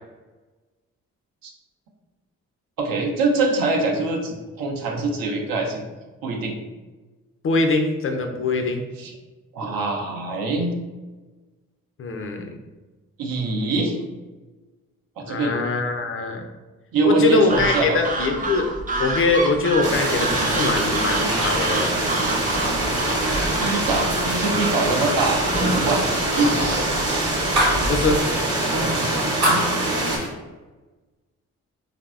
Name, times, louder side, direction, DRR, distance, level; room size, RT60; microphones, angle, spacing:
voice 1, 2.8-5.8 6.2-6.6 9.0-9.1 9.5-10.7 13.2-14.0 15.2-15.5 16.9-18.0 23.6-25.4 25.8-26.1 26.4-26.7 29.4-29.7, right 3 dB, 65° right, 1 dB, 0.6 m, -23 dB
voice 2, 7.4-8.8 12.0-12.6 15.2-16.4 17.0-18.7 19.0-22.0 26.3-26.8 27.9-28.3, left 3 dB, 35° left, 4 dB, 0.4 m, -22 dB
sound 1, 17.5-28.2, right 2 dB, 25° right, 0.4 m, -29 dB
sound 2, 19.8-30.2, right 1 dB, 40° right, 1.0 m, -24 dB
sound 3, 20.1-24.4 24.8-25.1 25.4-27.8 28.2-28.3 28.7-30.3, right 1 dB, 85° right, 1.1 m, -28 dB
3.3 x 2.0 x 2.3 m, 1.2 s
hypercardioid pair, 40°, 37 cm